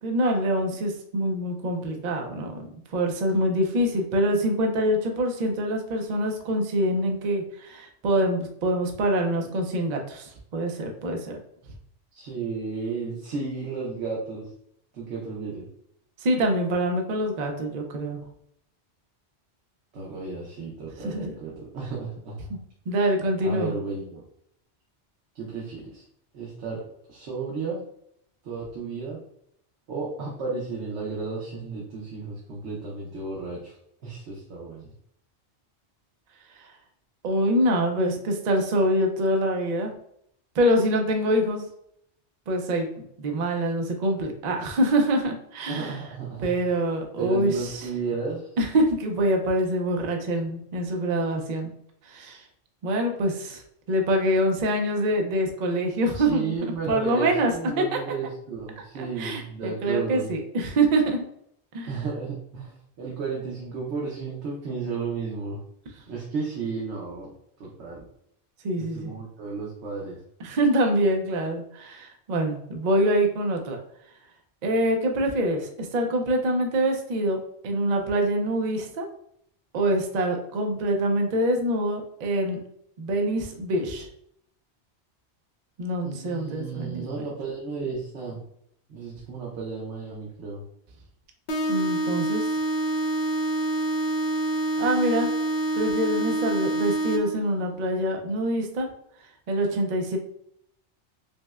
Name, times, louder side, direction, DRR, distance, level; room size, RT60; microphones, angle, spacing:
voice 1, 0.0-11.4 16.2-18.2 21.0-21.3 22.9-23.8 36.6-36.7 37.2-39.9 40.6-41.6 42.5-46.0 46.4-47.9 48.6-51.7 52.1-52.4 52.8-53.6 53.9-56.5 56.9-57.5 57.8-57.9 59.0-61.2 61.7-62.0 68.6-69.1 70.4-73.8 74.6-77.4 77.6-79.1 79.7-82.6 83.0-84.1 85.8-87.3 91.7-92.5 94.8-95.3 95.7-98.9 99.5-100.2, right 1 dB, 50° right, 3 dB, 0.5 m, -25 dB
voice 2, 12.1-14.5 14.9-15.7 19.9-22.4 23.4-24.2 25.3-26.0 26.3-27.8 28.4-29.2 29.9-33.8 34.0-34.9 45.7-46.5 47.2-48.5 56.1-60.3 61.9-65.6 66.1-67.3 67.6-68.0 68.8-70.2 86.0-88.4 88.9-90.6, right 4 dB, 80° right, -4 dB, 1.1 m, -33 dB
sound 1, 91.5-97.5, right 2 dB, 55° left, 0.6 m, -26 dB
5.2 x 2.1 x 2.3 m, 0.71 s
omnidirectional pair, 1.2 m